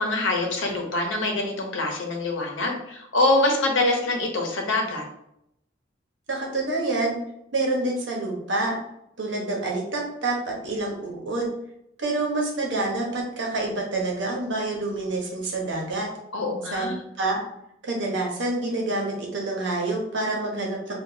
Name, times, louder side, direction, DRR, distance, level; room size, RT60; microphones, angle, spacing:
voice 1, 0.0-5.0 16.3-16.9, left 2 dB, 85° left, 2 dB, 0.8 m, -24 dB
voice 2, 6.3-7.2 7.5-8.8 9.2-11.5 12.0-16.1 16.7-17.4 17.8-21.0, right 2 dB, 70° right, -1 dB, 1.0 m, -27 dB
4.7 x 2.5 x 2.7 m, 0.79 s
head